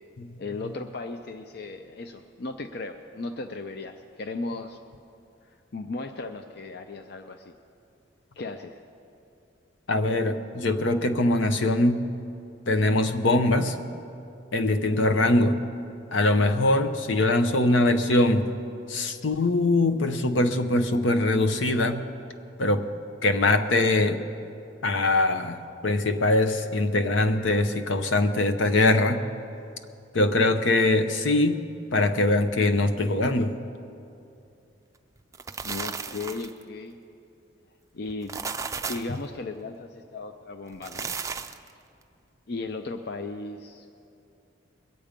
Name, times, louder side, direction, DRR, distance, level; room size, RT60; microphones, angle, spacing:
voice 1, 0.4-4.8 5.7-7.5 8.4-8.8 35.6-37.0 37.9-38.4 38.9-41.1 42.5-44.1, left 3 dB, 55° left, 6 dB, 0.5 m, -36 dB
voice 2, 9.9-12.0 12.7-13.8 14.5-15.6 16.1-18.5 18.9-22.0 22.6-22.9 23.2-24.2 24.8-29.2 30.1-31.6 31.9-33.6, left 2 dB, 80° left, 8 dB, 0.8 m, -22 dB
sound 1, 35.2-36.6 38.1-39.2 40.7-41.7, right 5 dB, 15° right, 0.4 m, -34 dB
22.0 x 8.7 x 5.2 m, 2.6 s
head